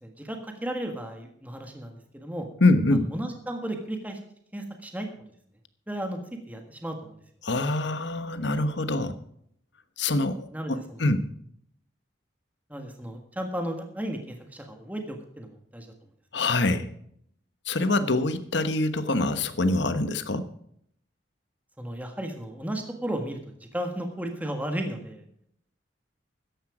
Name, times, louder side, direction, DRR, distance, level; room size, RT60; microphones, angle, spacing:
voice 1, 0.0-2.5 3.1-4.2 4.5-5.1 5.9-6.2 6.5-7.1 10.5-11.0 12.7-15.9 16.3-16.4 21.8-25.2, right 1 dB, 10° right, 4 dB, 1.5 m, -34 dB
voice 2, 2.6-3.1 7.4-9.1 10.0-11.2 16.3-16.9 17.7-20.4, left 2 dB, 65° left, 11 dB, 1.2 m, -25 dB
14.0 x 10.5 x 4.9 m, 0.68 s
head